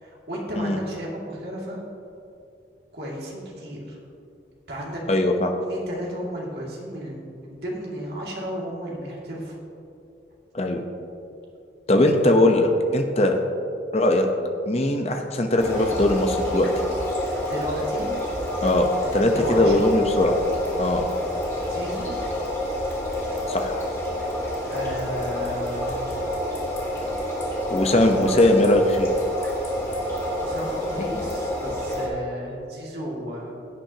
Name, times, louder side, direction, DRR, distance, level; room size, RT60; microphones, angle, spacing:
voice 1, 0.0-1.8 2.9-4.0 4.7-5.0 5.6-9.6 17.5-18.1 19.3-19.9 21.7-22.1 24.6-26.2 30.4-33.5, equal, 60° right, -3 dB, 2.4 m, -34 dB
voice 2, 5.1-5.5 10.5-10.8 11.9-13.4 13.9-14.3 14.7-16.7 18.6-20.4 20.8-21.0 23.5-23.8 27.7-29.1, left 1 dB, 35° left, 4 dB, 0.8 m, -20 dB
sound 1, 15.6-32.1, left 1 dB, 15° left, 1.8 m, -28 dB
16.0 x 8.8 x 2.9 m, 2.6 s
head